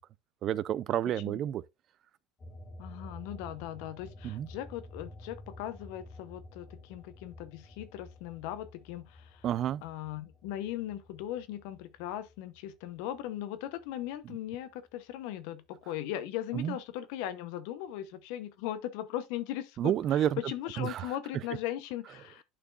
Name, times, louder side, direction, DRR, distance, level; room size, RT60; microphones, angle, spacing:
voice 1, 0.4-1.6 4.2-4.5 9.4-9.8 16.5-16.8 19.8-20.4 20.8-21.1, right 11 dB, 50° right, 0.4 m, -30 dB
sound 1, 2.4-13.3 13.7-15.1, left 1 dB, 30° left, 2.0 m, -51 dB
voice 2, 2.8-9.5 9.8-22.4, left 12 dB, 75° left, 0.8 m, -38 dB
11.0 x 4.4 x 2.5 m
supercardioid pair, 105°, 0 cm